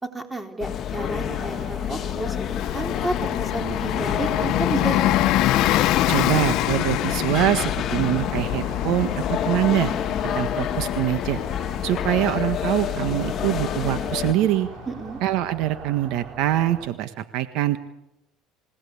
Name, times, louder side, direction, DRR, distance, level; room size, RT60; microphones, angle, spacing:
voice 1, 0.0-2.4 2.7-5.0 14.9-15.2, right 2 dB, 10° right, 4 dB, 3.9 m, -31 dB
sound 1, 0.6-14.3, left 9 dB, 45° left, 1.4 m, -28 dB
sound 2, 0.9-16.9, right 6 dB, 45° right, 4.1 m, -42 dB
Bus, 2.5-14.8, left 15 dB, 60° left, 1.1 m, -26 dB
voice 2, 6.1-9.9 10.2-11.4 11.8-14.7 15.2-17.8, right 13 dB, 65° right, 10 dB, 1.5 m, -24 dB
28.5 x 18.0 x 8.4 m, 0.86 s
supercardioid pair, 115°, 0 cm